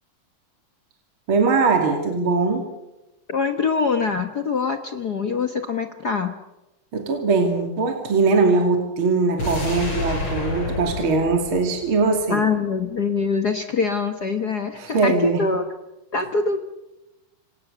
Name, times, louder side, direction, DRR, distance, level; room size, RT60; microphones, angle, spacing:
voice 1, 1.3-2.6 6.9-12.4 14.7-15.4, right 4 dB, 40° right, 3 dB, 3.3 m, -21 dB
voice 2, 3.3-6.3 12.3-15.6 16.1-16.6, left 4 dB, 65° left, 7 dB, 0.9 m, -24 dB
sound 1, 9.4-12.5 12.8-12.9, left 2 dB, 40° left, 6.7 m, -29 dB
28.0 x 26.0 x 6.9 m, 1.0 s
omnidirectional pair, 3.7 m